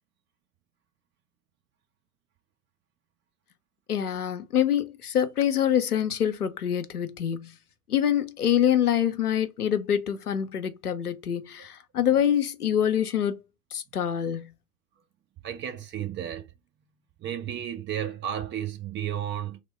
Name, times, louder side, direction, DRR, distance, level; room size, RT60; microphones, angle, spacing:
voice 1, 3.9-7.5 7.9-13.4 13.7-14.5, left 9 dB, 90° left, 0.6 m, -25 dB
voice 2, 15.4-16.5 17.2-19.6, right 10 dB, 25° right, 0.8 m, -33 dB
3.5 x 2.1 x 3.3 m
figure-of-eight pair, 95°, 44 cm